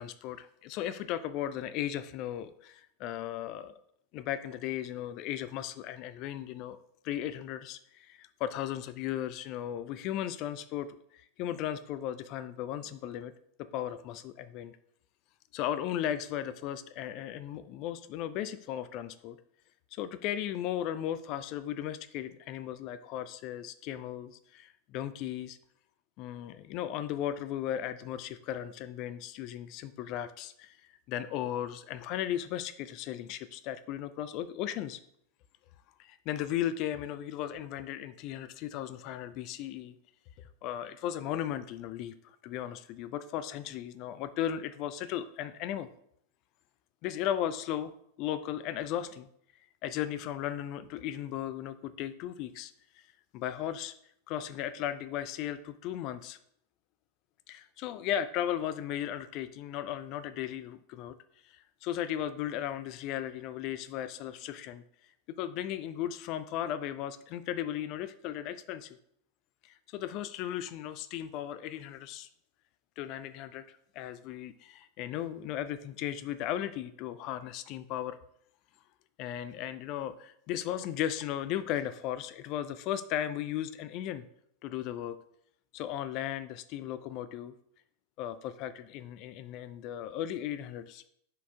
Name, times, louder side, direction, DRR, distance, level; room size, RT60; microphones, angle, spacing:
voice 1, 0.0-3.7 4.1-6.8 7.0-13.3 13.6-14.8 15.5-19.4 19.9-25.6 26.2-30.8 31.1-35.0 36.0-40.0 40.4-45.9 47.0-49.3 49.8-53.0 53.3-53.9 54.3-56.4 57.5-61.2 61.4-64.8 65.4-69.0 69.6-72.3 73.0-78.2 79.2-84.2 84.6-85.2 85.7-87.5 88.2-91.0, left 11 dB, 40° left, 13 dB, 0.3 m, -36 dB
11.0 x 4.9 x 2.3 m, 0.70 s
figure-of-eight pair, 90°, 0 cm